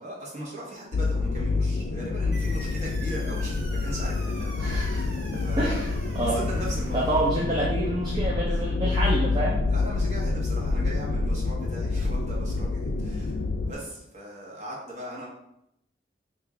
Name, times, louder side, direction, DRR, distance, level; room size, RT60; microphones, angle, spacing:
voice 1, 0.0-5.9 6.2-7.2 8.5-8.6 9.7-15.3, right 1 dB, 40° right, -4 dB, 0.9 m, -39 dB
sound 1, 0.9-13.7, left 3 dB, 80° left, 0.4 m, -27 dB
sound 2, 2.3-7.3, right 2 dB, 70° right, 0.8 m, -44 dB
voice 2, 4.6-5.0 5.3-5.9 6.1-6.4 6.9-9.6, right 1 dB, 25° right, -5 dB, 0.4 m, -27 dB
3.0 x 2.4 x 3.6 m, 0.79 s
head